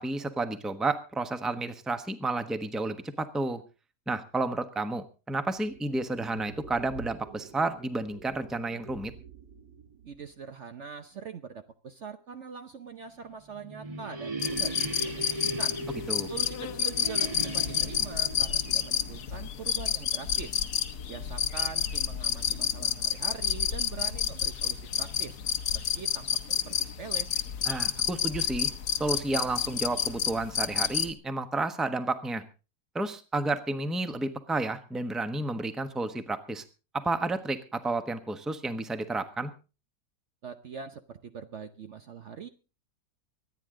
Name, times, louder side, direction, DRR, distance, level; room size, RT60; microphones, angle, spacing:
voice 1, 0.0-3.6 4.1-9.1 16.1-16.3 27.7-28.7 29.0-32.4 32.9-36.6 36.9-39.5, right 2 dB, ahead, 9 dB, 0.9 m, -31 dB
sound 1, 5.5-10.3, right 5 dB, 80° right, 1.9 m, -48 dB
voice 2, 10.0-15.8 16.3-20.6 21.1-25.4 25.7-27.3 40.4-42.5, right 6 dB, 50° right, 8 dB, 1.0 m, -43 dB
sound 2, 13.3-20.0, right 2 dB, 25° right, 1.1 m, -38 dB
sound 3, 14.4-31.1, left 9 dB, 75° left, 1.5 m, -30 dB
25.0 x 9.8 x 3.8 m, 0.33 s
omnidirectional pair, 1.7 m